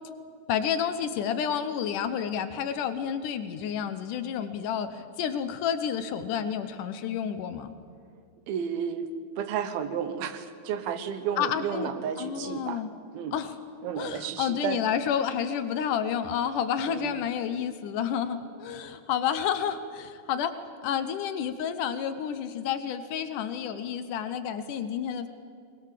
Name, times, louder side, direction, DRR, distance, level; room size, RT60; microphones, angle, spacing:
voice 1, 0.5-7.7 11.4-11.9 12.2-12.9 13.3-13.6 14.0-20.5 20.8-25.3, left 8 dB, 70° left, 10 dB, 2.2 m, -30 dB
voice 2, 8.5-9.1 9.4-12.8 13.1-13.4 13.8-14.8 16.9-17.1, right 8 dB, 90° right, 10 dB, 3.0 m, -32 dB
21.5 x 21.0 x 7.5 m, 2.3 s
omnidirectional pair, 4.2 m